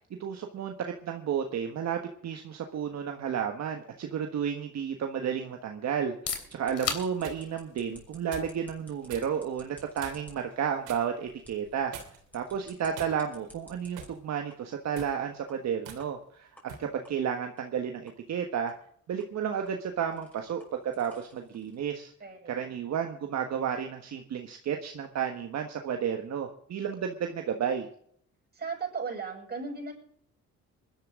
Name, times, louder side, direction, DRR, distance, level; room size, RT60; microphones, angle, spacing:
voice 1, 0.2-11.9 12.3-16.5 16.8-18.7 19.1-22.1 22.5-27.9, right 8 dB, 60° right, 4 dB, 1.4 m, -32 dB
sound 1, 6.0-21.6, left 6 dB, 55° left, 3.3 m, -45 dB
sound 2, 6.5-14.1 14.5-14.6 15.0-15.1 15.5-15.6 16.0-16.1 16.6-16.7 17.1-17.2 17.6-17.7 18.1-18.2 18.7-18.8 19.2-21.8, left 1 dB, 5° left, 5.9 m, -56 dB
sound 3, 7.1-7.4 8.3-8.6 9.1-9.3 10.0-10.3 10.8-11.1 11.9-12.3 12.9-13.5 14.0-14.2 14.8-15.2 15.8-16.0 16.7-16.9, right 7 dB, 85° right, 3.3 m, -44 dB
voice 2, 22.2-22.7 28.5-29.9, right 5 dB, 30° right, 0 dB, 7.0 m, -37 dB
21.0 x 12.0 x 3.8 m, 0.63 s
cardioid pair, 90°, 30 cm